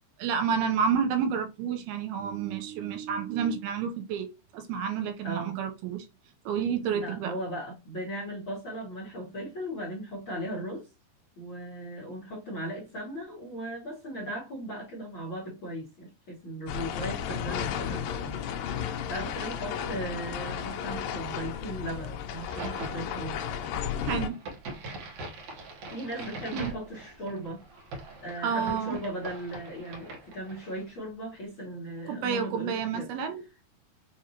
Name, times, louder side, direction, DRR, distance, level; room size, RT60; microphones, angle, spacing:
voice 1, 0.2-4.3 4.5-6.1 6.5-7.3 24.1-24.4 26.5-26.7 28.4-29.0 32.1-33.4, right 7 dB, 80° right, 2.6 m, -29 dB
voice 2, 5.2-5.5 6.9-10.9 11.4-23.4 25.9-27.6 28.2-33.1, right 1 dB, 55° left, 1.4 m, -37 dB
sound 1, 16.7-24.3, left 8 dB, 80° left, 2.0 m, -34 dB
Crack, 22.3-30.9, right 2 dB, 60° right, 2.0 m, -43 dB
6.2 x 2.5 x 2.8 m
omnidirectional pair, 4.4 m